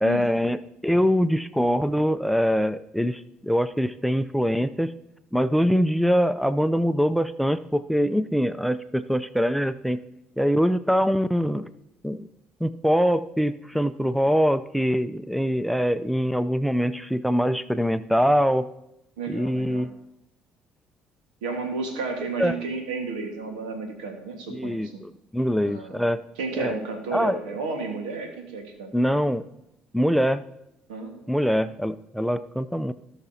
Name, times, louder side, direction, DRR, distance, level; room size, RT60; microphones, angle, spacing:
voice 1, 0.0-4.9 5.3-10.0 10.4-11.7 12.0-12.3 12.6-18.7 19.3-19.9 22.4-22.5 24.5-26.2 26.5-26.8 27.1-27.4 28.9-29.4 29.9-30.4 31.3-32.9, equal, ahead, 14 dB, 0.5 m, -23 dB
voice 2, 19.2-19.9 21.4-25.0 25.6-26.0 26.4-28.9 30.9-31.4, right 4 dB, 90° right, 4 dB, 1.6 m, -32 dB
17.5 x 5.9 x 2.8 m, 0.84 s
hypercardioid pair, 55°, 4 cm